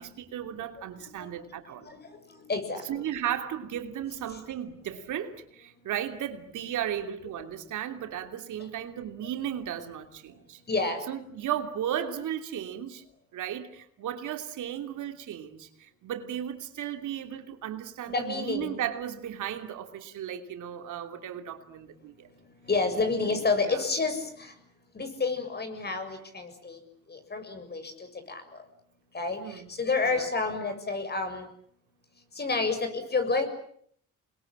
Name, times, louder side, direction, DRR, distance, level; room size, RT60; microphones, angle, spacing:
voice 1, 0.0-1.9 2.8-13.0 13.3-22.3 23.6-23.8 29.3-29.7 30.0-30.3, right 10 dB, 80° right, 6 dB, 3.0 m, -35 dB
voice 2, 2.3-3.0 10.7-11.0 18.1-18.8 22.7-24.5 24.9-26.8 27.1-27.9 28.3-28.4 29.1-31.5 32.4-33.5, left 3 dB, 35° left, 8 dB, 7.2 m, -29 dB
28.0 x 21.5 x 9.0 m, 0.65 s
cardioid pair, 90°, 30 cm